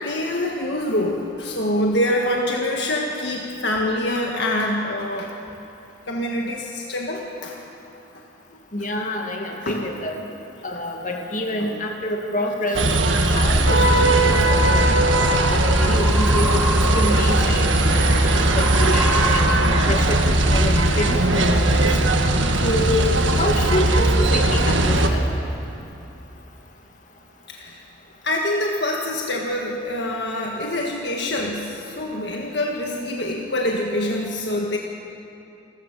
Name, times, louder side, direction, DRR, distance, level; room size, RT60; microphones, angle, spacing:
voice 1, 0.0-5.3 6.1-7.6 8.1-8.2 8.5-8.6 9.5-9.8 10.7-10.8 11.6-11.8 15.5-15.6 27.5-27.8 28.2-34.8, left 1 dB, 60° left, 0 dB, 1.7 m, -25 dB
voice 2, 8.7-10.2 10.6-12.9 13.3-14.7 15.5-21.9 22.6-25.2, left 1 dB, 40° left, 2 dB, 2.2 m, -27 dB
sound 1, 12.8-25.1, right 1 dB, 80° right, 1.5 m, -18 dB
sound 2, 14.8-20.3, equal, 5° right, 1.6 m, -29 dB
29.0 x 14.0 x 6.8 m, 2.9 s
head